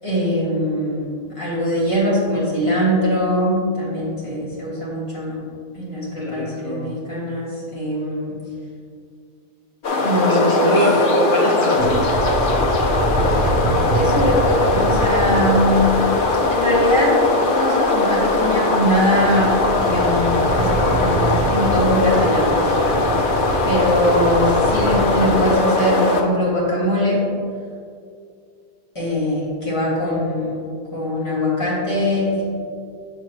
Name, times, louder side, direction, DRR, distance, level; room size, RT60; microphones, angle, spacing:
voice 1, 0.0-1.1 1.4-5.4 5.7-8.4 10.0-10.8 13.9-15.8 16.5-20.7 21.0-23.2 23.6-27.2 28.9-30.6 30.9-32.4, equal, 20° left, -7 dB, 2.0 m, -21 dB
voice 2, 6.2-6.9 10.0-12.0, equal, 70° left, -5 dB, 1.8 m, -22 dB
sound 1, 9.8-26.2, left 3 dB, 50° left, 0.7 m, -20 dB
sound 2, 11.8-25.5, right 3 dB, 60° right, 0.4 m, -27 dB
7.3 x 7.0 x 3.0 m, 2.3 s
omnidirectional pair, 1.5 m